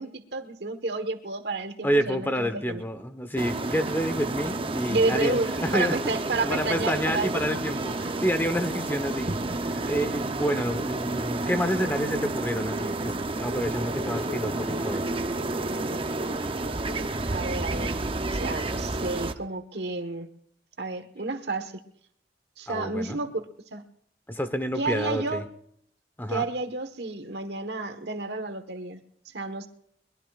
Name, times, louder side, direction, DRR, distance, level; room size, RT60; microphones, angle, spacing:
voice 1, 0.0-2.9 4.9-7.5 17.3-17.9 18.3-20.3 20.8-21.7 22.6-23.8 24.7-25.5 26.3-29.0 29.3-29.7, right 3 dB, 75° right, 7 dB, 1.4 m, -30 dB
voice 2, 1.8-5.9 6.4-9.3 9.6-15.0 22.7-23.2 24.3-25.4 26.2-26.4, equal, 10° left, 9 dB, 1.1 m, -28 dB
sound 1, 3.4-19.3, right 2 dB, 30° right, 0.7 m, -30 dB
23.0 x 21.5 x 2.5 m, 0.69 s
head